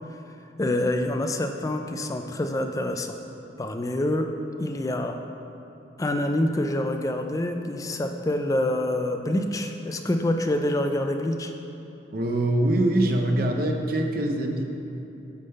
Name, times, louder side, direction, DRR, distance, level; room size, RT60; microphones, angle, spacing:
voice 1, 0.6-3.2 3.6-4.3 4.6-5.2 6.0-11.5, left 1 dB, 20° left, 5 dB, 0.3 m, -26 dB
voice 2, 12.1-14.6, right 1 dB, 50° right, 3 dB, 0.6 m, -23 dB
8.4 x 3.8 x 5.4 m, 2.9 s
head